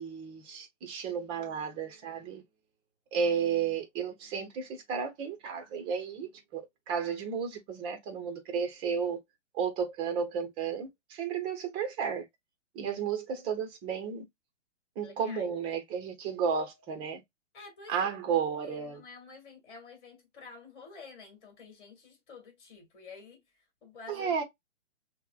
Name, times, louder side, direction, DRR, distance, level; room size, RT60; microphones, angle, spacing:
voice 1, 0.0-2.4 3.1-9.2 9.5-12.3 12.7-14.2 15.0-17.2 17.9-19.0 24.1-24.4, right 6 dB, 15° right, 0.6 m, -33 dB
voice 2, 15.0-15.5 17.5-24.3, left 4 dB, 40° left, 1.6 m, -50 dB
5.5 x 2.1 x 2.2 m
hypercardioid pair, 135°, 38 cm